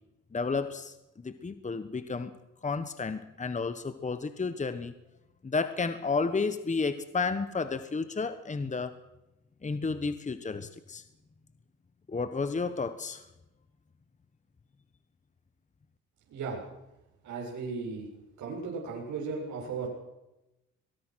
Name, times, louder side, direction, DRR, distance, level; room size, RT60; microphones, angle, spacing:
voice 1, 0.3-1.0 1.2-2.3 2.6-4.9 5.4-8.9 9.6-11.0 12.1-13.3, left 4 dB, 25° left, 11 dB, 1.3 m, -32 dB
voice 2, 16.3-16.6 17.2-18.1 18.4-19.9, right 4 dB, 70° right, -3 dB, 7.4 m, -36 dB
23.0 x 21.5 x 6.4 m, 0.94 s
cardioid pair, 90°, 30 cm